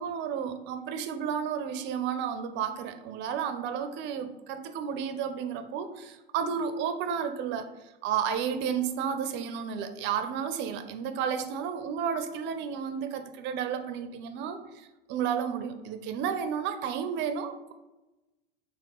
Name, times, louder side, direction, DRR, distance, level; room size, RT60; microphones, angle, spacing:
voice 1, 0.0-7.7 8.0-17.7, right 7 dB, 40° right, 8 dB, 0.4 m, -32 dB
3.2 x 2.9 x 3.5 m, 1.0 s
hypercardioid pair, 95°, 29 cm